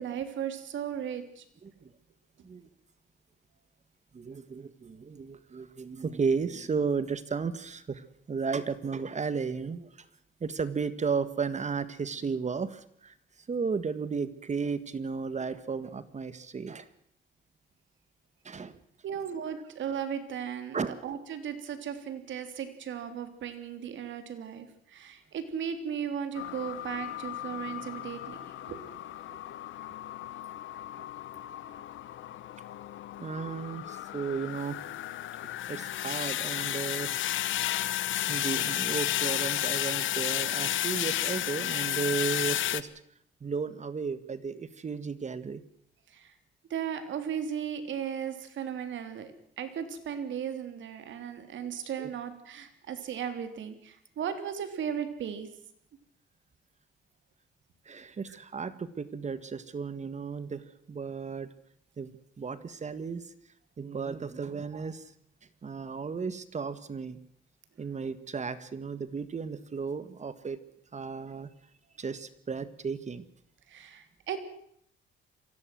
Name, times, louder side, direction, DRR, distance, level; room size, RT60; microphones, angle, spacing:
voice 1, 0.0-1.4 19.0-28.8 29.3-29.4 46.1-46.3 46.7-49.3 49.6-55.5 58.3-58.4 73.7-74.4, right 8 dB, 70° right, 9 dB, 3.3 m, -36 dB
voice 2, 4.1-9.9 10.4-13.1 13.5-16.9 18.4-18.8 20.7-21.0 33.2-34.8 35.7-37.1 38.3-42.9 43.4-45.6 52.0-52.1 57.8-61.5 62.0-63.2 63.8-65.1 65.6-67.2 67.8-70.6 70.9-71.5 72.0-73.2, right 5 dB, 35° right, 14 dB, 1.7 m, -34 dB
sound 1, 26.4-42.8, left 13 dB, 75° left, 1.1 m, -33 dB
23.5 x 16.5 x 7.7 m, 0.68 s
cardioid pair, 90°, 20 cm